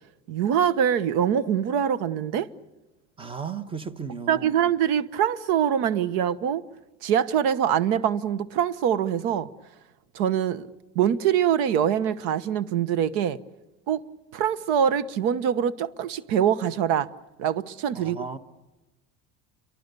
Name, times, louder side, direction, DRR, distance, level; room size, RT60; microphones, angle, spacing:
voice 1, 0.3-2.5 4.3-6.6 7.0-9.5 10.1-10.7 10.9-13.4 13.9-14.0 14.3-17.1 17.4-18.2, right 9 dB, 75° right, 1.2 m, -24 dB
voice 2, 3.2-4.5 17.9-18.4, right 5 dB, 15° right, 1.2 m, -35 dB
29.5 x 24.0 x 6.8 m
cardioid pair, 160°, 39 cm